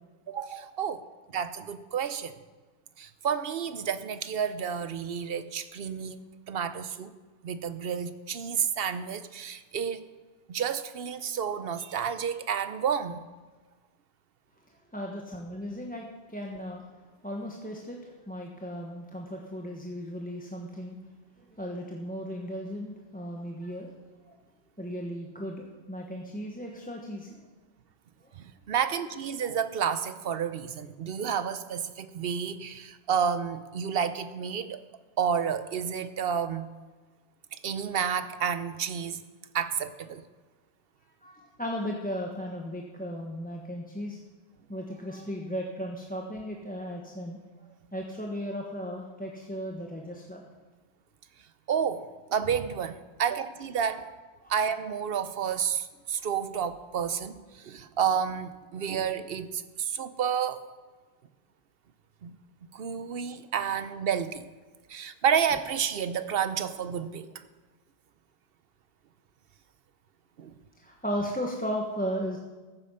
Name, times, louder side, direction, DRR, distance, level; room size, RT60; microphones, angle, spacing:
voice 1, 0.3-1.0 1.3-2.3 3.0-7.1 7.4-10.0 10.5-13.3 28.4-34.8 35.2-36.7 37.5-39.2 39.5-40.2 51.7-54.1 54.5-60.6 62.2-62.4 62.7-64.5 64.9-67.3 70.4-70.5, right 7 dB, 65° right, 12 dB, 0.9 m, -30 dB
voice 2, 14.9-16.8 17.2-21.0 21.6-23.9 24.3-24.4 24.8-27.4 41.2-44.2 44.7-50.4 54.4-54.5 58.8-58.9 70.8-72.4, equal, 10° left, -1 dB, 1.1 m, -36 dB
14.0 x 8.5 x 5.6 m, 1.3 s
omnidirectional pair, 1.1 m